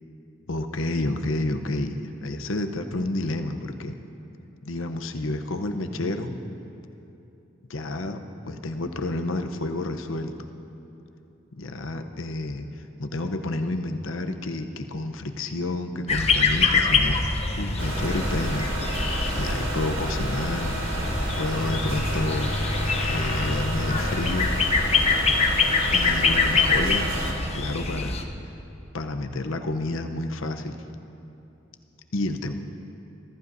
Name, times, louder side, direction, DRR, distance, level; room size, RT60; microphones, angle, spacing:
voice 1, 0.5-3.9 4.7-6.4 7.7-8.2 8.5-10.3 11.6-12.7 13.0-17.2 17.6-18.7 19.3-20.8 21.4-22.5 23.0-24.5 25.9-27.2 27.5-28.2 28.9-30.8 32.1-32.5, left 2 dB, 85° left, 6 dB, 0.8 m, -30 dB
sound 1, 16.1-28.2, left 4 dB, 30° left, 0.8 m, -25 dB
sound 2, 17.8-27.3, right 1 dB, 85° right, 2.9 m, -30 dB
24.0 x 15.0 x 2.7 m, 2.9 s
head